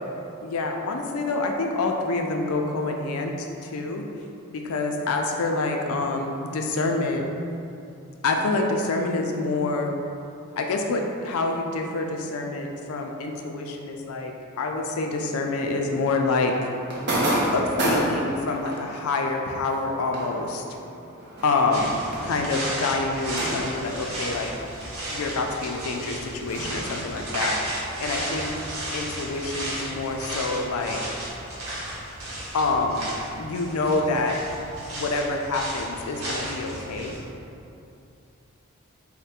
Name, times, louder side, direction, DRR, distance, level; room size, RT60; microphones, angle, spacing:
voice 1, 0.4-4.0 4.5-7.2 8.2-9.9 10.6-16.7 17.5-20.6 21.4-22.0 22.2-24.5 25.1-27.6 28.0-28.5 28.9-31.0 32.5-33.1 33.4-34.4 34.9-37.2, left 3 dB, 80° left, 2 dB, 0.4 m, -27 dB
sound 1, 16.3-25.2 25.5-29.1, right 1 dB, 50° right, 0.6 m, -32 dB
sound 2, 21.7-37.2, right 1 dB, 80° right, 0.9 m, -34 dB
3.3 x 2.1 x 4.1 m, 2.7 s
head